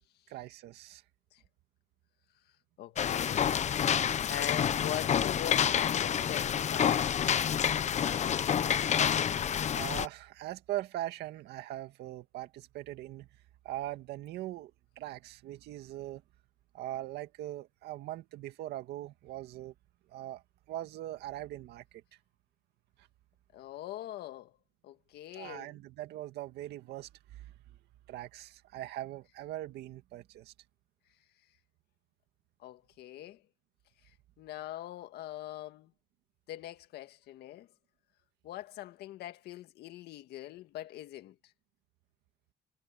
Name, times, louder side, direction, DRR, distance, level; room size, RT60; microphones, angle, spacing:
voice 1, 0.3-1.0 4.6-4.7 9.7-13.3 13.6-16.2 16.7-19.7 20.1-22.0 23.0-23.1 25.3-27.5 28.1-30.5, right 14 dB, 80° right, 2.0 m, -41 dB
voice 2, 2.8-3.5 3.9-8.1 23.5-24.6 24.8-25.7 32.6-33.4 34.4-35.9 36.5-37.7 38.4-41.4, left 14 dB, 75° left, 1.9 m, -42 dB
sound 1, 3.0-10.1, left 8 dB, 45° left, 1.1 m, -28 dB
cardioid pair, 110°, 17 cm